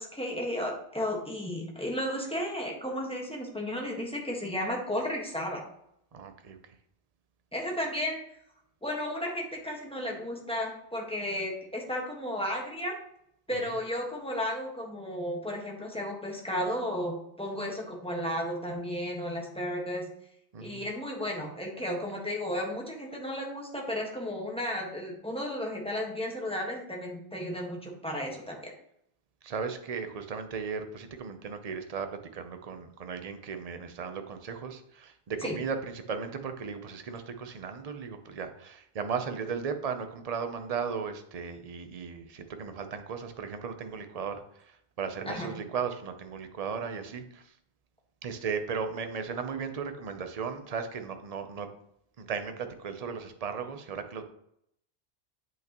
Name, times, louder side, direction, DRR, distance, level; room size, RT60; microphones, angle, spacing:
voice 1, 0.0-5.6 7.5-8.2 8.8-13.0 13.5-20.0 20.6-28.7 35.4-35.6 45.2-45.5, left 1 dB, 5° left, -1 dB, 1.4 m, -33 dB
voice 2, 6.1-6.6 20.5-20.8 29.4-47.4 48.2-51.7 52.2-54.2, right 6 dB, 40° right, 7 dB, 0.7 m, -36 dB
8.2 x 6.1 x 3.0 m, 0.73 s
omnidirectional pair, 1.1 m